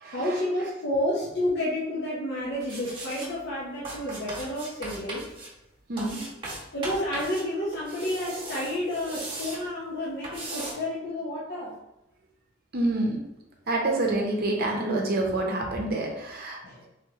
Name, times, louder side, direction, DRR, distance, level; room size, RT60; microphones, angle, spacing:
voice 1, 0.1-5.3 6.7-11.7 16.6-16.9, left 1 dB, 60° left, -6 dB, 0.8 m, -30 dB
sound 1, 2.6-3.3 3.8-5.5 6.0-7.4 7.7-9.6 10.2-10.7, right 2 dB, 25° right, 1.2 m, -38 dB
voice 2, 5.9-6.2 12.7-13.2 13.7-16.6, right 2 dB, 50° right, 0 dB, 0.7 m, -27 dB
3.5 x 3.1 x 3.5 m, 0.93 s
head